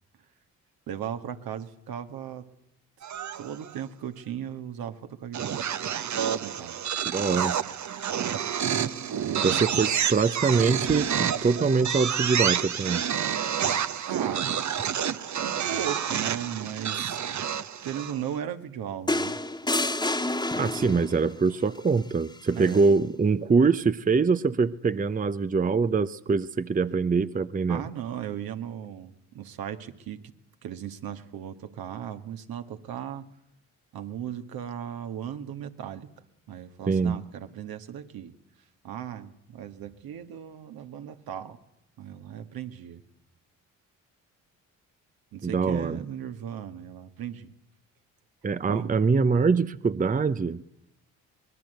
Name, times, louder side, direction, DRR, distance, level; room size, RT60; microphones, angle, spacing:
voice 1, 0.9-2.5 3.4-5.6 6.4-6.8 9.1-9.8 14.1-14.5 15.4-17.2 17.8-19.4 22.5-22.9 27.7-30.2 30.6-33.3 33.9-36.1 36.5-38.3 38.8-41.6 42.0-43.0 45.3-47.5 48.7-48.9, right 9 dB, 65° right, 7 dB, 1.9 m, -37 dB
sound 1, 3.0-3.8 5.3-18.3, right 8 dB, 50° right, 1.1 m, -29 dB
voice 2, 7.1-7.6 9.4-13.0 20.6-27.8 36.9-37.2 45.4-46.0 48.4-50.6, right 4 dB, 20° right, 13 dB, 0.8 m, -24 dB
sound 2, 19.1-21.2 22.6-22.8, left 2 dB, 10° left, 1.7 m, -28 dB
24.5 x 21.0 x 8.0 m, 0.82 s
hypercardioid pair, 55°, 38 cm